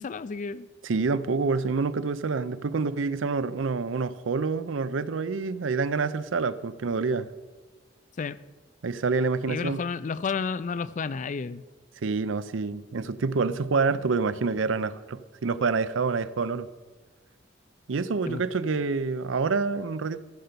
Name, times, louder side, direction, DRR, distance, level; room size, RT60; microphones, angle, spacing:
voice 1, 0.0-0.7 8.2-8.4 9.5-11.6 18.3-18.4, left 5 dB, 40° left, 16 dB, 0.4 m, -31 dB
voice 2, 0.8-7.3 8.8-9.9 12.0-16.7 17.9-20.2, right 4 dB, 80° right, 15 dB, 0.5 m, -27 dB
14.0 x 5.7 x 6.7 m, 1.3 s
head